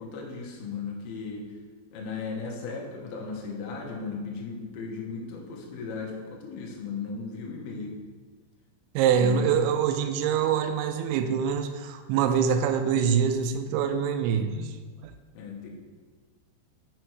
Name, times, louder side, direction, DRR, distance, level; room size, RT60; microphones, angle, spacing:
voice 1, 0.0-1.5 1.9-7.9 9.2-9.5 15.3-15.7, left 5 dB, 70° left, -1 dB, 2.6 m, -36 dB
voice 2, 9.0-14.9, right 7 dB, 85° right, 7 dB, 2.8 m, -25 dB
6.4 x 6.0 x 4.6 m, 1.4 s
omnidirectional pair, 5.3 m